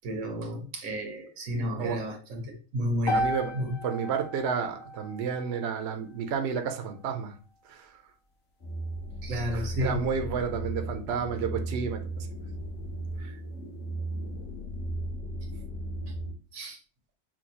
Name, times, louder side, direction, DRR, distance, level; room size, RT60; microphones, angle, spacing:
voice 1, 0.0-3.3 3.5-3.8 9.2-10.0 16.5-16.8, equal, 90° right, 3 dB, 1.4 m, -32 dB
sound 1, 3.1-7.2, equal, 85° left, 1.4 m, -35 dB
voice 2, 3.1-3.5 3.8-7.3 9.5-12.3 13.2-13.3, right 6 dB, 60° right, 6 dB, 0.8 m, -31 dB
sound 2, 8.6-16.3, right 1 dB, 55° left, 1.9 m, -36 dB
5.9 x 2.3 x 2.8 m, 0.36 s
omnidirectional pair, 1.4 m